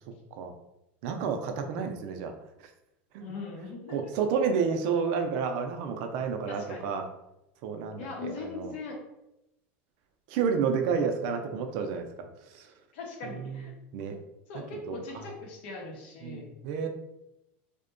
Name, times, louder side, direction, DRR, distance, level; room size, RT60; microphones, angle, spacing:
voice 1, 1.0-2.3 3.1-3.2 3.9-7.1 7.6-8.7 10.3-12.7 13.2-13.7 13.9-14.2 14.5-15.3 16.2-16.9, right 6 dB, 60° right, 5 dB, 0.4 m, -31 dB
voice 2, 3.2-4.1 6.5-6.8 8.0-9.0 12.9-13.7 14.5-16.5, left 3 dB, 75° left, 0 dB, 0.8 m, -40 dB
2.7 x 2.1 x 2.5 m, 0.87 s
supercardioid pair, 140°, 6 cm